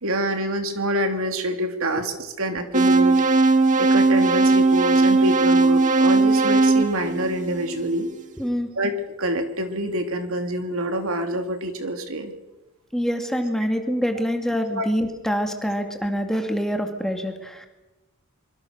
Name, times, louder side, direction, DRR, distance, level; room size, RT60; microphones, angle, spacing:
voice 1, 0.0-3.2 3.8-8.1 8.7-12.3 14.7-14.8, right 1 dB, 65° right, 6 dB, 3.0 m, -26 dB
sound 1, 2.7-7.9, right 3 dB, 35° right, 2.0 m, -18 dB
voice 2, 8.4-8.7 12.9-17.7, equal, ahead, 5 dB, 2.4 m, -25 dB
25.5 x 24.0 x 6.7 m, 1.0 s
head